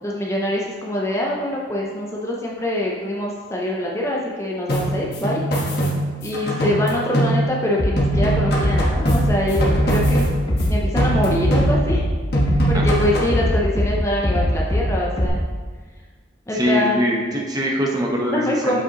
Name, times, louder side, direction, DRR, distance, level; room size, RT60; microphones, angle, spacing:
voice 1, 0.0-5.7 6.2-10.3 10.7-12.1 12.7-15.4 16.5-17.1 18.1-18.8, left 1 dB, 15° left, -3 dB, 0.6 m, -24 dB
sound 1, 4.7-7.7 8.0-10.7 11.0-12.0 12.3-13.4, right 1 dB, 60° left, 1.2 m, -22 dB
Bass drum, 7.8-8.3 8.6-9.2 9.5-10.2 10.5-11.1 11.4-12.0 12.4-13.0 13.3-13.9 14.2-14.8 15.2-15.3, left 1 dB, 35° left, 0.9 m, -20 dB
voice 2, 16.5-18.8, equal, 20° right, -2 dB, 0.9 m, -22 dB
7.0 x 5.4 x 2.9 m, 1.5 s
head